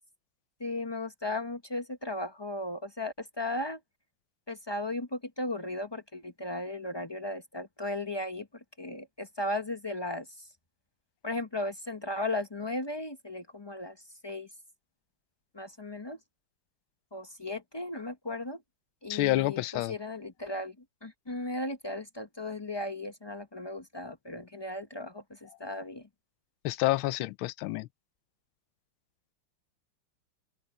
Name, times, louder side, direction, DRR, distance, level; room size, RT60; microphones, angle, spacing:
voice 1, 0.6-3.8 4.5-8.5 8.8-10.5 11.2-14.5 15.5-16.2 17.1-18.6 19.0-19.6 19.9-20.7 21.0-26.1, left 2 dB, 35° left, 0.4 m, -36 dB
voice 2, 19.1-19.9 26.6-27.9, left 17 dB, 85° left, 1.4 m, -28 dB
open air
omnidirectional pair, 2.2 m